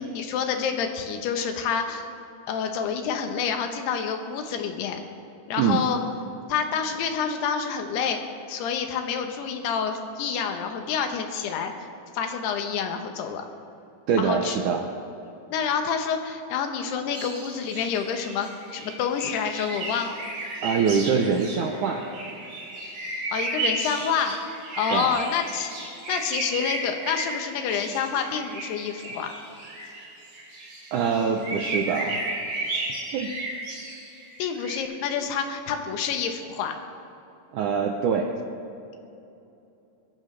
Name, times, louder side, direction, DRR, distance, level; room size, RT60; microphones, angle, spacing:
voice 1, 0.0-2.1 2.5-5.0 5.5-6.0 6.5-8.2 8.5-11.9 12.1-13.5 14.2-14.6 15.5-20.2 23.3-24.4 24.8-29.3 34.4-36.8, left 7 dB, 90° left, 5 dB, 3.2 m, -28 dB
voice 2, 14.1-14.9 20.6-22.0 24.9-25.2 30.9-32.2 33.1-33.3 37.5-38.3, right 6 dB, 75° right, 3 dB, 1.8 m, -24 dB
sound 1, 17.1-34.8, right 2 dB, 50° right, 4.4 m, -34 dB
21.5 x 14.0 x 3.4 m, 2.8 s
omnidirectional pair, 4.5 m